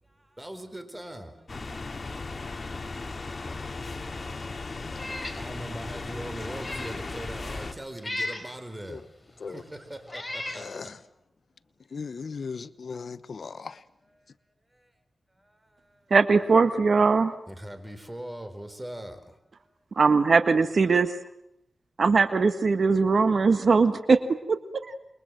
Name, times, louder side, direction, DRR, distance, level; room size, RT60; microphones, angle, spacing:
voice 1, 0.0-1.5 5.4-11.2 14.0-14.3 14.7-14.9 15.3-16.1 17.5-19.7, right 1 dB, 15° right, 4.5 m, -42 dB
sound 1, 1.5-7.7, left 3 dB, 45° left, 2.4 m, -36 dB
Meow, 4.9-5.4 5.9-6.0 6.5-7.0 8.0-8.5 9.4-9.5 10.1-10.7, left 1 dB, 15° left, 4.6 m, -35 dB
voice 2, 11.9-13.8, left 5 dB, 70° left, 1.0 m, -37 dB
voice 3, 16.1-17.3 20.0-21.1 22.0-24.2 24.5-24.9, right 4 dB, 65° right, 1.6 m, -21 dB
28.5 x 22.5 x 7.7 m
cardioid pair, 70°, 0 cm